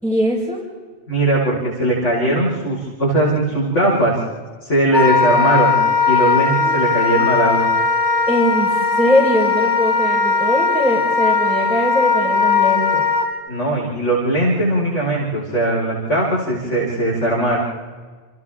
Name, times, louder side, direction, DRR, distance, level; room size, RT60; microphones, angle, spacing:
voice 1, 0.0-0.6 6.6-6.8 8.3-13.0, equal, 5° right, -5 dB, 4.8 m, -20 dB
voice 2, 1.1-4.2 4.6-5.8 6.1-7.7 13.5-17.6, right 1 dB, 90° left, -6 dB, 5.5 m, -19 dB
Wind instrument woodwind instrument, 4.9-13.3, left 5 dB, 70° left, 5.3 m, -18 dB
30.0 x 28.0 x 3.7 m, 1.5 s
omnidirectional pair, 1.2 m